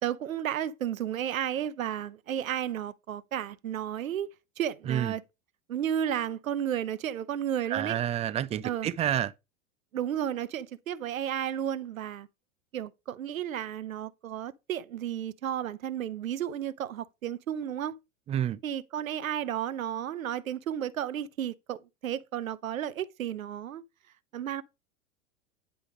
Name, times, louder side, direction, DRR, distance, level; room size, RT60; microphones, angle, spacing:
voice 1, 0.0-5.2 5.7-8.0 8.6-8.9 9.9-12.3 12.7-18.0 18.6-23.8 24.3-24.6, right 10 dB, 90° right, 0.7 m, -33 dB
voice 2, 7.7-9.3 18.3-18.6, right 11 dB, 15° right, 0.3 m, -29 dB
10.0 x 3.5 x 5.1 m
hypercardioid pair, 95°, 40 cm